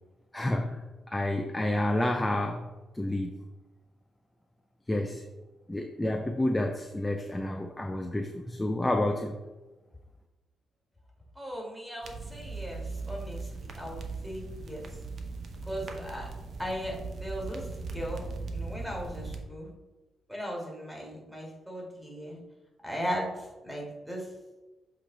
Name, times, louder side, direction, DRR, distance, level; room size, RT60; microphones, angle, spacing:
voice 1, 0.3-2.7 2.9-3.4 4.9-5.2 5.7-9.4, left 1 dB, 10° left, 4 dB, 0.5 m, -29 dB
voice 2, 11.4-15.0 15.7-16.3 16.6-18.3 18.5-19.7 20.3-22.4 22.8-24.3, equal, 5° right, -2 dB, 2.0 m, -37 dB
sound 1, 12.0-19.4, right 3 dB, 55° right, 0.8 m, -39 dB
7.6 x 3.2 x 3.9 m, 1.1 s
cardioid pair, 90°, 0 cm